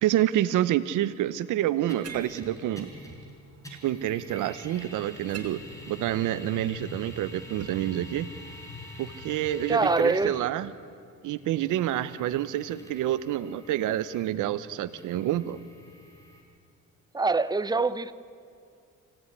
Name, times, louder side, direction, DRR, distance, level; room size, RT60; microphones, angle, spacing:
voice 1, 0.0-2.9 3.8-8.3 9.0-10.7 11.2-15.6, right 12 dB, 85° right, 0.9 m, -28 dB
sound 1, 1.9-3.3 3.6-10.5 11.4-16.4, left 1 dB, 10° left, 6.0 m, -46 dB
sound 2, 2.0-10.0, right 6 dB, 55° right, 2.8 m, -51 dB
voice 2, 9.7-10.4 17.1-18.1, right 3 dB, 15° right, 0.9 m, -24 dB
25.0 x 17.0 x 9.7 m
cardioid pair, 90°, 30 cm